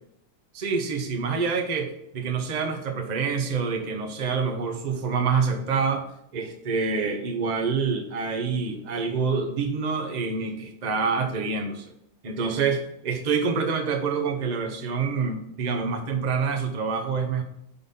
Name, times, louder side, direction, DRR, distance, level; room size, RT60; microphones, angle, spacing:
voice 1, 0.5-6.1 6.3-11.8 12.2-17.4, right 5 dB, 45° right, 5 dB, 0.5 m, -27 dB
6.1 x 4.0 x 5.3 m, 0.76 s
omnidirectional pair, 2.1 m